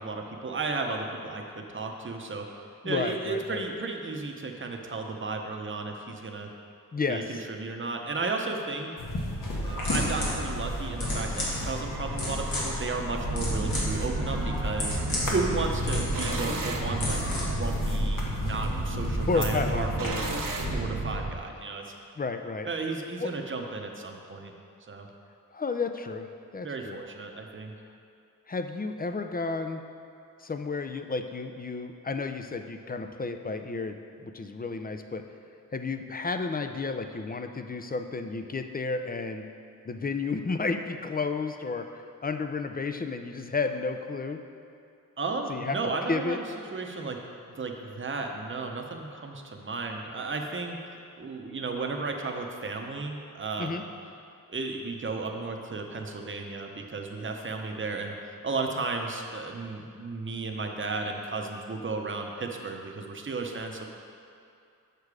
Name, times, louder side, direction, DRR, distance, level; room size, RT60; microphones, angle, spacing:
voice 1, 0.0-2.5 2.8-6.5 7.1-8.9 9.6-15.0 15.2-20.3 20.7-21.9 22.6-24.5 24.9-25.1 26.6-27.7 45.2-46.4 46.7-47.2 47.5-50.8 51.2-53.9 54.5-63.9, right 3 dB, 35° right, 2 dB, 0.8 m, -34 dB
voice 2, 2.8-3.6 6.9-7.4 19.3-19.9 22.2-22.7 23.2-23.3 25.5-27.0 28.5-29.8 30.4-35.2 35.7-39.5 39.9-44.4 45.5-45.8 46.1-46.4 53.6-53.8, left 4 dB, 25° left, 7 dB, 0.5 m, -32 dB
sound 1, 9.0-20.8, left 1 dB, 70° left, 1.4 m, -35 dB
sound 2, 9.6-20.1, left 1 dB, 85° left, 1.8 m, -32 dB
sound 3, 13.2-21.3, right 3 dB, 70° right, 0.9 m, -33 dB
6.8 x 6.4 x 4.8 m, 2.4 s
wide cardioid pair, 70°, 34 cm